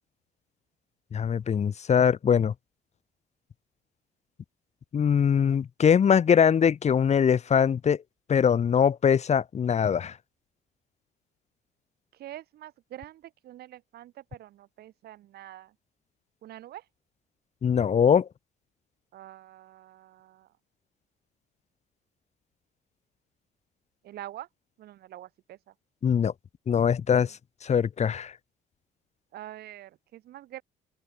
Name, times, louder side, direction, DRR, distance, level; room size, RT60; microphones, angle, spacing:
voice 1, 1.1-2.5 4.9-8.0 8.3-10.1 17.6-18.3 26.0-26.3 26.7-27.4 27.6-28.3, left 7 dB, 40° left, 3.5 m, -22 dB
voice 2, 12.1-15.7 16.4-16.8 19.1-20.5 24.0-24.5 24.8-25.6 29.3-30.6, right 13 dB, 70° right, 6.0 m, -45 dB
cardioid pair, 110°, 17 cm